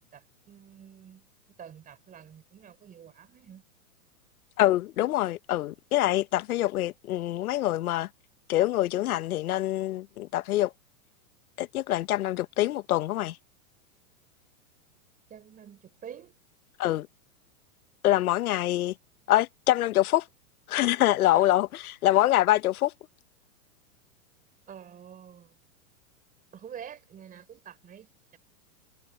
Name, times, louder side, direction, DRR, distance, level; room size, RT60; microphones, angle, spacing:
voice 1, 0.1-1.3 1.6-3.6 15.3-16.3 21.2-21.5 24.7-25.5 26.5-28.4, right 8 dB, 20° right, 3.9 m, -47 dB
voice 2, 4.6-8.1 8.5-10.7 11.6-13.4 16.8-17.1 18.0-18.9 19.3-20.3 20.7-22.9, left 15 dB, 80° left, 0.9 m, -25 dB
supercardioid pair, 145°, 43 cm